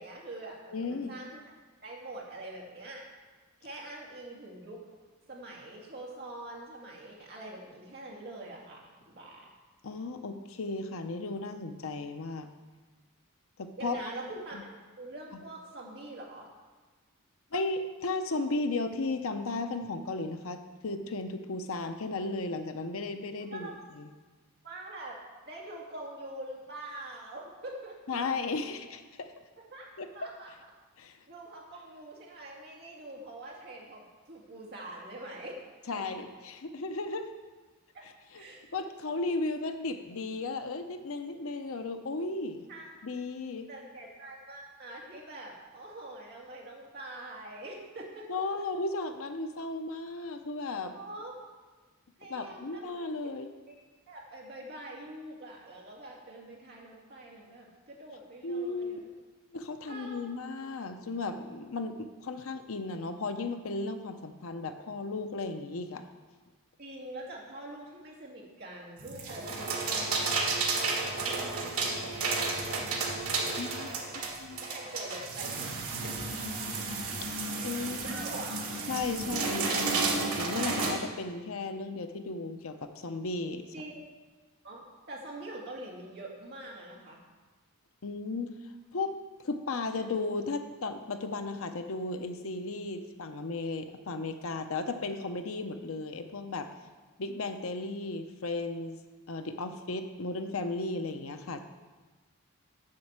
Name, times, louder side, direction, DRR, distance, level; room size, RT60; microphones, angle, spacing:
voice 1, 0.0-1.4 1.8-3.0 3.6-4.8 5.3-9.5 13.8-16.5 23.5-23.7 24.6-25.2 25.5-28.2 29.7-29.9 30.1-30.5 31.3-35.6 36.0-36.1 37.9-38.6 42.7-42.9 43.7-48.2 48.6-48.7 50.9-51.4 52.2-52.9 53.7-53.8 54.1-59.1 59.9-60.2 66.8-73.0 73.3-75.6 77.8-78.6 83.7-84.0 84.6-87.2, right 1 dB, 50° right, -2 dB, 2.2 m, -44 dB
voice 2, 0.7-1.1 9.8-12.5 13.6-14.0 17.5-23.7 24.0-24.1 28.1-29.3 30.0-30.1 31.0-31.2 35.9-37.3 38.3-38.4 38.7-42.7 43.0-43.7 48.3-50.9 52.3-53.5 58.4-59.0 59.5-66.0 73.6-73.9 74.4-74.6 77.2-78.2 78.9-83.6 88.0-88.6 88.9-89.2 89.4-96.7 97.2-99.0 99.3-101.6, left 3 dB, 65° left, 7 dB, 0.7 m, -35 dB
sound 1, 69.0-80.9, right 3 dB, 80° right, 1.7 m, -32 dB
7.5 x 6.5 x 7.5 m, 1.3 s
head